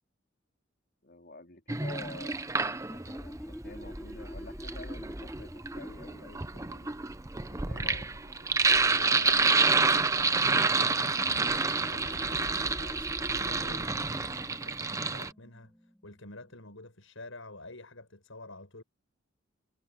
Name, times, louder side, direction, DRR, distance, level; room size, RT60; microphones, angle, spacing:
voice 1, 1.0-6.9 7.5-8.5, left 2 dB, 50° left, 4.0 m, -49 dB
Sink (filling or washing), 1.7-3.2 4.4-15.3, right 4 dB, 15° right, 0.6 m, -28 dB
sound 1, 2.8-8.1 11.1-16.4, equal, 5° left, 2.9 m, -44 dB
voice 2, 8.9-15.8 16.0-18.8, left 2 dB, 85° left, 6.1 m, -48 dB
head